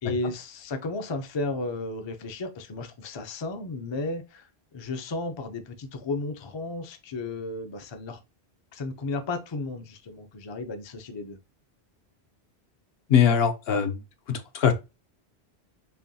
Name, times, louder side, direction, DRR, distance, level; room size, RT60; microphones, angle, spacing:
voice 1, 0.0-8.2 8.7-11.4, left 3 dB, 40° left, 0.4 m, -34 dB
voice 2, 13.1-14.0 14.3-14.7, left 8 dB, 70° left, 0.9 m, -21 dB
5.6 x 2.3 x 2.6 m
omnidirectional pair, 1.1 m